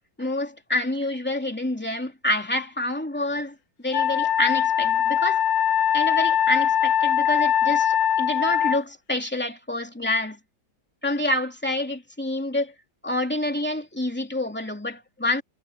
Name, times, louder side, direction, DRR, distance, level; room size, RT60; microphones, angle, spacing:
voice 1, 0.2-3.5 3.8-5.4 5.9-10.4 11.0-12.7 13.0-15.4, left 1 dB, 5° left, 2.9 m, -27 dB
Wind instrument woodwind instrument, 3.9-8.8, left 9 dB, 75° left, 1.4 m, -21 dB
omnidirectional pair, 2.1 m